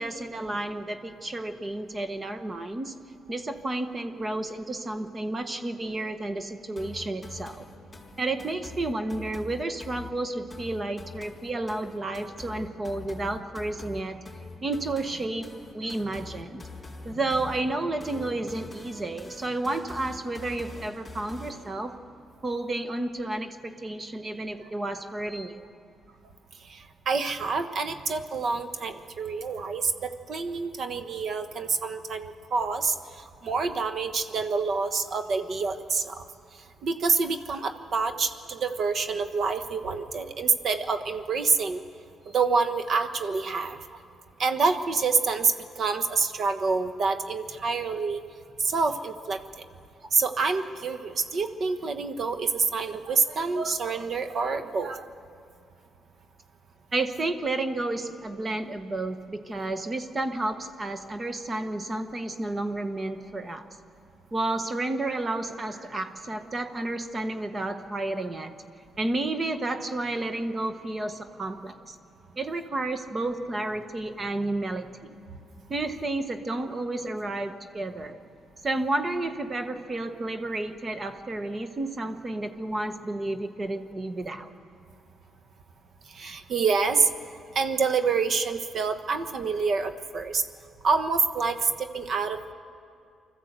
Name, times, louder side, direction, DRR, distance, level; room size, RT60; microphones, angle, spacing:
voice 1, 0.0-2.9 3.3-7.6 8.2-14.2 14.6-15.5 15.7-16.6 17.0-22.0 22.4-25.7 56.9-63.7 64.3-68.5 69.0-72.0 72.4-75.2 75.7-78.2 78.6-84.5, right 2 dB, 30° right, 8 dB, 1.2 m, -31 dB
sound 1, 6.8-21.8, left 3 dB, 20° left, 3.8 m, -44 dB
voice 2, 27.1-32.9 33.4-36.2 36.8-41.8 42.3-43.8 44.4-48.2 48.6-49.4 50.1-55.0 86.2-87.1 87.5-90.4 90.8-92.5, right 4 dB, 55° right, 8 dB, 1.3 m, -27 dB
25.0 x 14.0 x 8.1 m, 2.4 s
cardioid pair, 90°, 0 cm